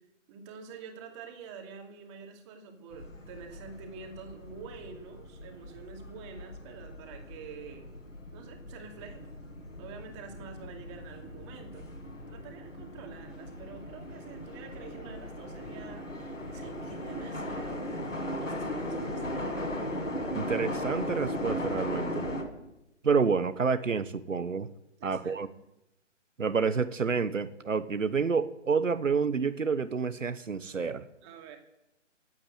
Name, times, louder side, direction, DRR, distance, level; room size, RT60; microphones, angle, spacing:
voice 1, 0.3-7.9 8.3-9.3 9.8-11.9 12.3-18.0 18.4-19.4 25.0-25.6 31.2-31.6, right 6 dB, 25° right, 3 dB, 2.5 m, -47 dB
sound 1, 2.9-22.4, left 1 dB, 85° left, 5.3 m, -38 dB
voice 2, 20.3-22.3 23.0-24.7 25.0-25.5 26.4-31.1, right 5 dB, 90° right, 14 dB, 1.1 m, -29 dB
18.0 x 8.8 x 7.9 m, 0.90 s
figure-of-eight pair, 145°, 37 cm